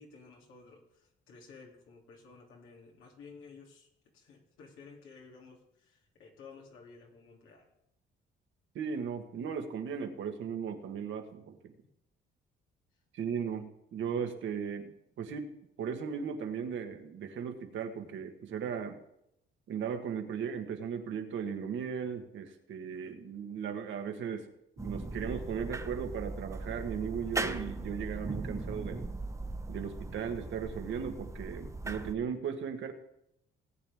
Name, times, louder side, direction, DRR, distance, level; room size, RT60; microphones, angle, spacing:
voice 1, 0.0-7.7, left 4 dB, 90° left, -2 dB, 2.9 m, -54 dB
voice 2, 8.7-11.7 13.1-15.5 15.8-19.0 19.7-24.5 24.8-29.1 29.7-32.9, right 7 dB, 75° right, 6 dB, 1.5 m, -37 dB
sound 1, 24.8-32.2, right 2 dB, 15° right, 0.8 m, -39 dB
18.5 x 8.7 x 3.6 m, 0.80 s
cardioid pair, 90°, 20 cm